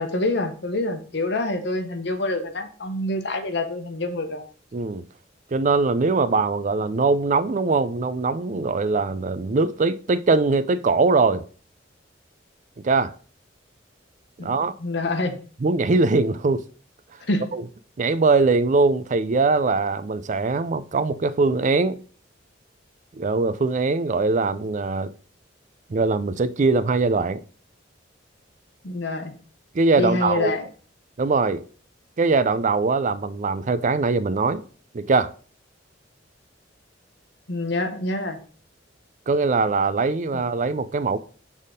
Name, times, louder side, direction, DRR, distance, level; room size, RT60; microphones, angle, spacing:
voice 1, 0.0-4.4 14.4-15.4 17.2-17.5 28.8-29.3 30.0-30.7 37.5-38.4 40.3-40.4, left 2 dB, 65° left, 1.0 m, -26 dB
voice 2, 4.7-5.0 5.5-11.4 12.8-13.1 14.4-14.7 15.6-16.6 17.5-17.6 18.0-22.0 23.1-25.1 25.9-27.4 29.7-30.6 31.2-31.6 32.2-34.6 34.9-35.3 39.3-41.2, right 3 dB, 40° right, 0.4 m, -21 dB
6.5 x 3.6 x 5.1 m
head